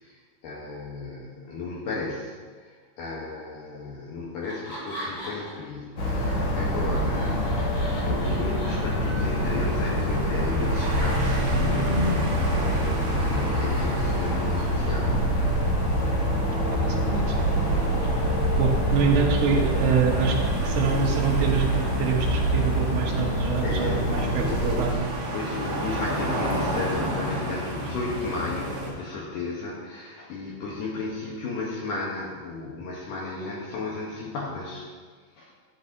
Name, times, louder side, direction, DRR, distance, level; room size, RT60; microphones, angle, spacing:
voice 1, 0.0-15.2 23.6-25.1 25.3-34.9 35.4-35.5, left 3 dB, 70° left, -4 dB, 2.1 m, -34 dB
Laughter, 4.4-5.7 6.1-9.3, equal, 35° left, 3.4 m, -39 dB
sound 1, 6.0-24.9, equal, 55° left, 1.8 m, -25 dB
sound 2, 9.2-28.9, equal, 45° right, 1.4 m, -32 dB
voice 2, 16.6-17.3 18.2-18.3 18.6-24.9, right 6 dB, 80° right, 0 dB, 2.9 m, -26 dB
11.0 x 8.6 x 2.7 m, 1.5 s
omnidirectional pair, 4.8 m